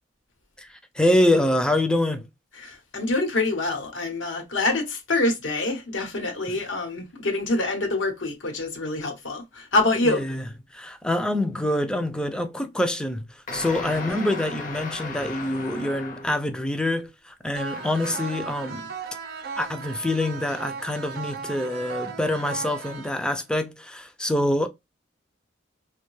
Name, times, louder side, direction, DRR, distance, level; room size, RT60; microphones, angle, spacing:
voice 1, 1.0-2.2 6.5-6.6 10.0-10.4 10.7-13.2 13.5-18.9 19.6-24.7, left 1 dB, 5° left, 0.3 m, -25 dB
voice 2, 2.6-10.2, left 2 dB, 85° left, 0.9 m, -26 dB
sound 1, 13.5-16.5 17.7-18.5, left 3 dB, 45° left, 0.6 m, -36 dB
sound 2, 17.6-23.6, right 5 dB, 55° right, 0.5 m, -36 dB
2.6 x 2.2 x 3.1 m
head